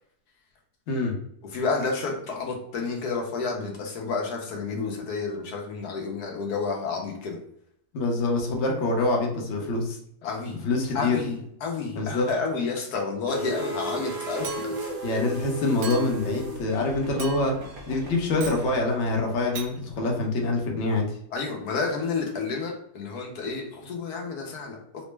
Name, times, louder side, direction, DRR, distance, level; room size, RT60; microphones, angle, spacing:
voice 1, 1.5-7.4 10.2-10.7 10.9-14.5 21.3-25.1, left 4 dB, 80° left, 1 dB, 1.3 m, -30 dB
voice 2, 7.9-10.0 10.6-11.2 11.9-12.3 15.0-17.5 17.9-21.2, left 2 dB, 55° left, 0 dB, 1.0 m, -25 dB
sound 1, 13.3-19.6, equal, 45° right, 0.8 m, -36 dB
Chink clink, 14.4-15.0 15.8-16.3 17.2-17.7 18.4-18.7 19.6-19.7, right 6 dB, 75° right, 1.1 m, -38 dB
4.0 x 2.0 x 3.2 m, 0.71 s
omnidirectional pair, 1.7 m